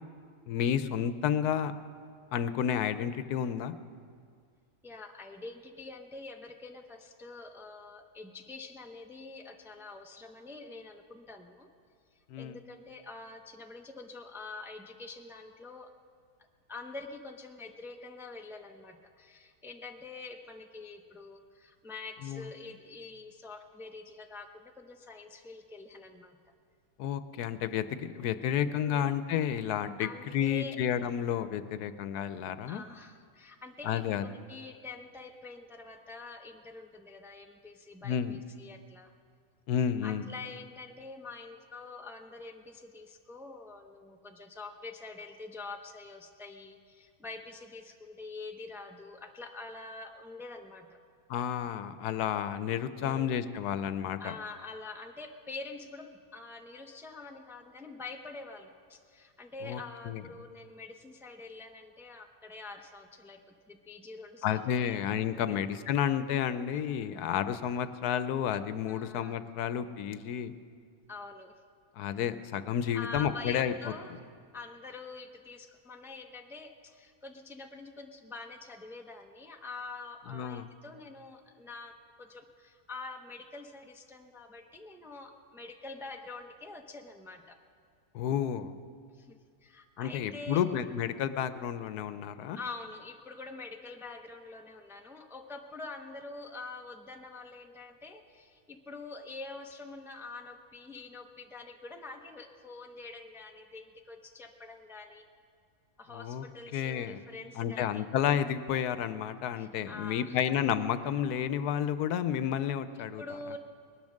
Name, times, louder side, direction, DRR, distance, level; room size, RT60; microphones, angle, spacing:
voice 1, 0.5-1.7 2.3-3.7 12.3-12.6 22.2-22.5 27.0-32.8 33.8-34.2 38.0-38.4 39.7-40.3 51.3-54.3 59.6-59.8 60.0-60.2 64.4-70.5 72.0-73.7 80.3-80.7 88.1-88.7 90.0-92.6 106.1-106.4 106.7-107.2 107.6-113.2, left 9 dB, 85° left, 12 dB, 1.2 m, -31 dB
voice 2, 4.8-11.7 12.4-15.9 16.4-26.4 28.8-29.1 30.0-30.8 32.7-39.1 40.0-51.0 53.0-53.5 54.2-65.0 65.3-65.6 66.7-66.8 68.9-69.4 71.1-71.6 72.1-72.2 72.9-74.2 74.5-87.6 89.1-90.6 92.5-105.2 106.0-108.0 109.6-110.4 112.9-113.6, left 3 dB, ahead, 3 dB, 0.6 m, -46 dB
20.5 x 10.5 x 6.4 m, 2.1 s
omnidirectional pair, 1.6 m